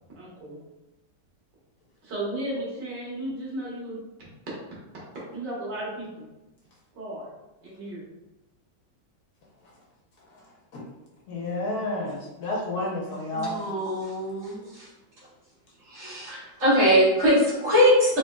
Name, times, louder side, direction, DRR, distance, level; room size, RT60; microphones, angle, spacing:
voice 1, 0.2-0.6 2.0-4.5 5.3-6.3 6.9-7.3 7.6-8.1, right 1 dB, 75° right, -6 dB, 1.8 m, -35 dB
voice 2, 10.3-10.9 11.3-13.6, left 1 dB, 65° left, -4 dB, 1.3 m, -31 dB
voice 3, 13.3-14.9 15.9-18.2, equal, 45° right, -10 dB, 2.1 m, -22 dB
4.2 x 3.0 x 2.2 m, 1.0 s
omnidirectional pair, 1.9 m